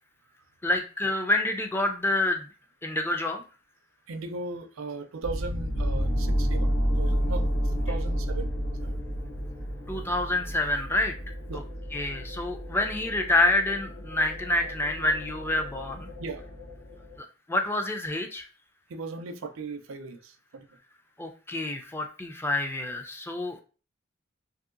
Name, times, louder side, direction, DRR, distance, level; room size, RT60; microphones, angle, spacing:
voice 1, 0.6-2.5 2.8-3.4 9.9-11.1 11.5-11.6 11.9-16.1 17.5-18.5 21.2-23.6, left 2 dB, 10° left, 0.3 m, -27 dB
voice 2, 4.1-8.5 8.8-9.0 11.5-11.7 14.6-14.7 16.2-16.4 18.9-20.7, right 3 dB, 80° right, 0.4 m, -38 dB
sound 1, 5.2-17.2, equal, 85° left, 0.9 m, -31 dB
2.9 x 2.7 x 2.4 m
head